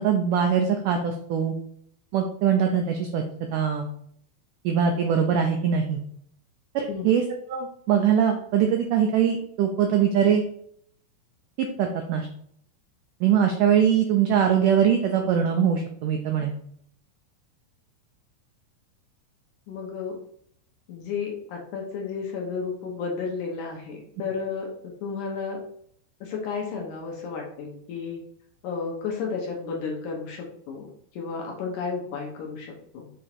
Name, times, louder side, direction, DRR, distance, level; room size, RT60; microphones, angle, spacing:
voice 1, 0.0-1.5 2.1-3.2 3.5-3.9 4.6-6.0 6.8-7.2 7.5-10.4 11.6-12.3 13.2-16.5, right 8 dB, 85° right, 4 dB, 1.8 m, -22 dB
voice 2, 19.7-20.2 20.9-25.6 26.2-28.2 28.6-33.1, left 5 dB, 65° left, -1 dB, 2.2 m, -32 dB
7.0 x 3.7 x 4.4 m, 0.65 s
omnidirectional pair, 4.5 m